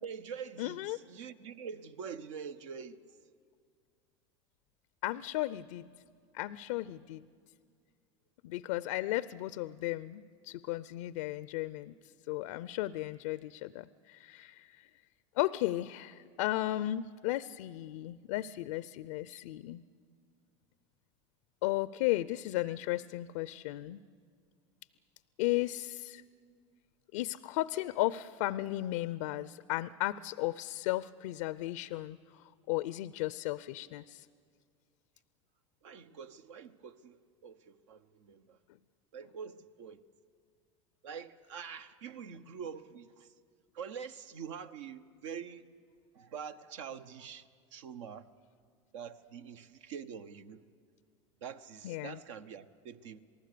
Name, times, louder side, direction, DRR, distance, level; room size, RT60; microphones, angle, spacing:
voice 1, 0.0-3.0 35.8-38.6 39.1-40.0 41.0-43.3 43.7-45.7 46.1-48.3 48.9-50.6 51.4-53.2, right 7 dB, 75° right, 1.0 m, -45 dB
voice 2, 0.6-1.0 5.0-5.9 6.3-7.3 8.4-11.9 12.3-14.9 15.4-19.8 21.6-24.0 25.4-26.2 27.1-34.3 51.8-52.2, left 16 dB, 70° left, 0.5 m, -35 dB
27.5 x 19.0 x 6.8 m
hypercardioid pair, 85°, 16 cm